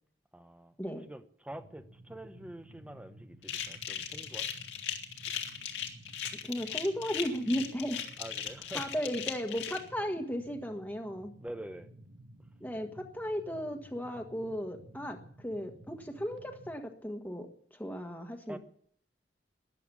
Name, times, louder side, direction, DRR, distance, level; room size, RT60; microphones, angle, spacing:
voice 1, 0.3-0.8 1.0-4.5 8.2-9.0 11.4-11.9 18.5-18.6, right 1 dB, 5° right, 9 dB, 1.0 m, -46 dB
sound 1, 1.5-16.7, right 1 dB, 80° right, 1.8 m, -55 dB
sound 2, 3.4-9.8, left 9 dB, 75° left, 2.3 m, -38 dB
voice 2, 6.4-8.0 8.7-11.3 12.6-18.6, equal, 10° left, 2 dB, 1.6 m, -35 dB
13.5 x 10.5 x 9.9 m, 0.62 s
head